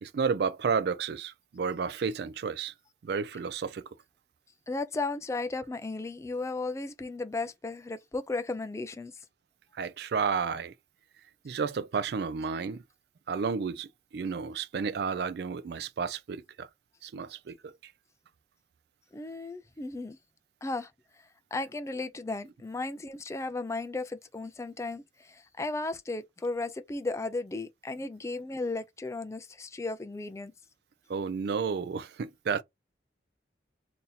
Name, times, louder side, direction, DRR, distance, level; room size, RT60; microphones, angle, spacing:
voice 1, 0.0-2.7 3.0-3.9 9.7-10.7 11.4-12.8 13.3-16.7 17.0-17.7 31.1-32.6, right 5 dB, 60° right, 0.4 m, -32 dB
voice 2, 4.7-9.1 19.1-20.2 20.6-20.9 21.5-30.5, left 3 dB, 15° left, 0.3 m, -35 dB
2.8 x 2.6 x 3.9 m
head